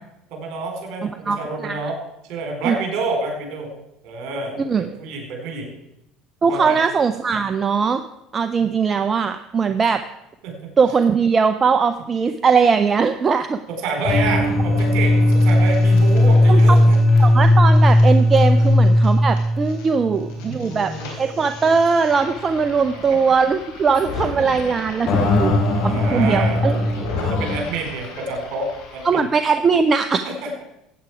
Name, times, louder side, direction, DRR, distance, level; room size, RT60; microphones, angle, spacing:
voice 1, 0.3-2.0 2.3-3.7 4.0-5.8 6.5-6.8 9.7-9.8 10.4-10.6 13.7-17.0 18.5-18.6 19.9-21.1 23.1-23.2 25.3-29.3 30.2-30.6, right 3 dB, 60° right, 2 dB, 4.2 m, -29 dB
voice 2, 1.0-1.9 2.6-2.8 4.6-4.9 6.4-8.0 8.3-10.0 10.8-13.6 16.5-16.8 17.2-25.5 25.8-26.8 29.0-30.2, right 5 dB, 30° right, 9 dB, 0.6 m, -20 dB
sound 1, 13.8-14.5 14.8-19.9 20.1-29.1, left 3 dB, 75° left, 3.8 m, -37 dB
sound 2, 14.1-20.6 20.9-21.0 21.6-21.7 25.1-27.6, left 1 dB, 50° left, 3.1 m, -16 dB
14.5 x 8.9 x 4.9 m, 0.84 s
hypercardioid pair, 70°, 0 cm